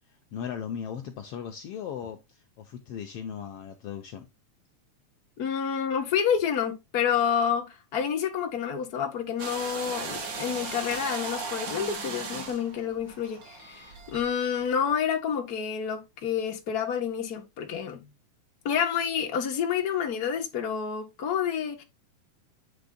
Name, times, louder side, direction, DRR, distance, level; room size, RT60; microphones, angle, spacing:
voice 1, 0.3-4.3, left 8 dB, 85° left, 1.3 m, -37 dB
voice 2, 5.4-18.1 18.6-21.8, left 8 dB, 45° left, 1.2 m, -29 dB
sound 1, 9.4-14.6, right 4 dB, 65° right, 0.8 m, -37 dB
8.8 x 3.4 x 3.7 m
omnidirectional pair, 3.5 m